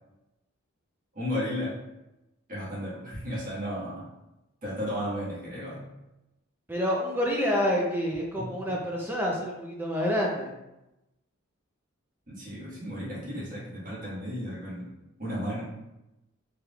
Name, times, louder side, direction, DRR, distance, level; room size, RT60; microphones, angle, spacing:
voice 1, 1.1-1.8 2.5-4.0 4.6-5.9 8.4-8.6 12.3-14.9 15.2-15.7, equal, 40° right, -8 dB, 1.5 m, -34 dB
voice 2, 6.7-10.5, equal, 10° right, -2 dB, 0.4 m, -28 dB
4.5 x 3.4 x 2.3 m, 0.95 s
head